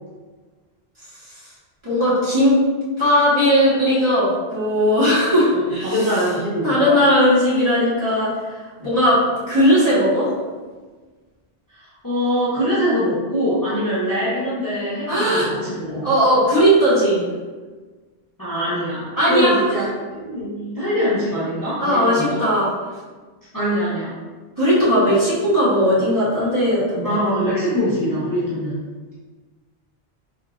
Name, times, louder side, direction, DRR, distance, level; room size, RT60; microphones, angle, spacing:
voice 1, 1.8-2.6 3.0-6.0 6.6-9.2 9.5-10.3 15.1-15.5 16.0-17.2 19.2-19.6 21.8-22.7 24.6-27.1, equal, 25° right, -11 dB, 1.5 m, -17 dB
voice 2, 5.5-7.0 12.0-16.1 18.4-19.8 20.1-22.4 23.5-24.1 27.0-28.8, equal, 20° left, -10 dB, 0.8 m, -23 dB
4.0 x 3.5 x 2.5 m, 1.4 s
omnidirectional pair, 1.1 m